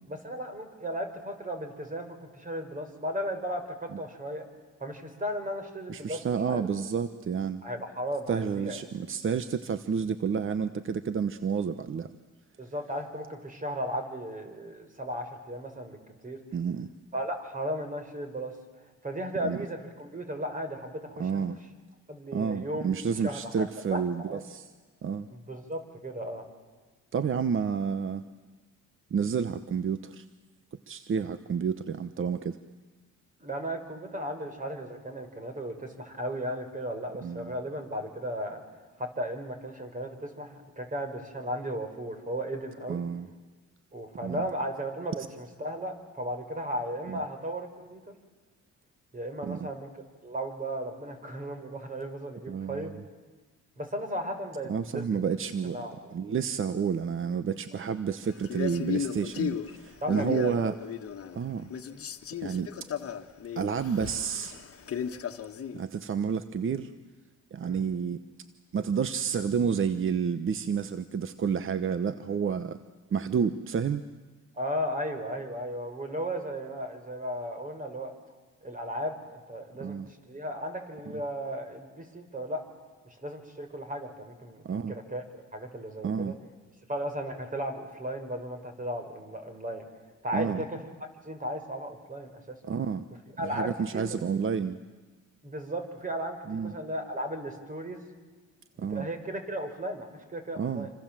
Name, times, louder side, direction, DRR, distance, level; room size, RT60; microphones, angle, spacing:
voice 1, 0.1-4.5 4.8-6.7 7.6-8.8 12.6-16.0 16.2-16.4 17.1-18.5 19.0-21.6 22.1-22.9 23.2-24.4 25.3-26.5 33.4-38.6 39.0-43.0 43.9-48.2 49.1-49.9 50.2-52.9 53.8-55.2 55.6-56.1 57.7-57.8 60.0-60.8 67.6-67.8 74.5-78.1 78.6-80.0 80.2-82.6 83.0-86.3 86.9-89.8 90.2-90.8 91.2-92.6 93.4-94.2 95.4-98.0 98.7-100.9, equal, 25° right, 6 dB, 5.1 m, -35 dB
voice 2, 5.9-7.6 8.3-12.1 16.5-16.9 19.4-19.6 21.2-21.6 22.3-24.7 25.0-25.3 27.1-28.2 29.1-30.2 30.9-32.6 37.2-37.5 42.9-43.3 44.2-44.5 47.1-47.2 49.4-49.6 52.5-52.9 54.7-60.8 61.3-61.7 62.4-62.7 63.6-64.6 65.7-66.9 67.5-68.2 68.7-72.8 73.1-74.0 79.8-80.1 84.6-84.9 86.0-86.3 90.3-90.6 92.6-93.0 93.4-94.8 96.5-96.7 98.8-99.1 100.6-100.9, right 6 dB, 45° right, 12 dB, 1.1 m, -30 dB
Male speech man speaking, 58.4-61.4 61.7-65.8, left 8 dB, 50° left, 1.6 m, -35 dB
28.0 x 26.0 x 7.6 m, 1.3 s
cardioid pair, 90°, 30 cm